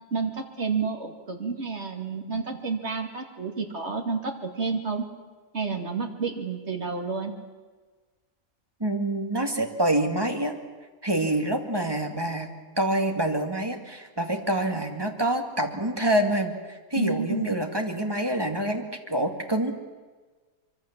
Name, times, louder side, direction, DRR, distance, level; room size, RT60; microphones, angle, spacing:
voice 1, 0.1-5.1 5.5-7.3 16.9-17.6, right 5 dB, 50° right, 4 dB, 2.8 m, -30 dB
voice 2, 8.8-10.5 11.0-12.5 12.8-19.7, right 1 dB, 15° right, 4 dB, 2.3 m, -26 dB
24.5 x 24.0 x 7.5 m, 1.3 s
omnidirectional pair, 1.5 m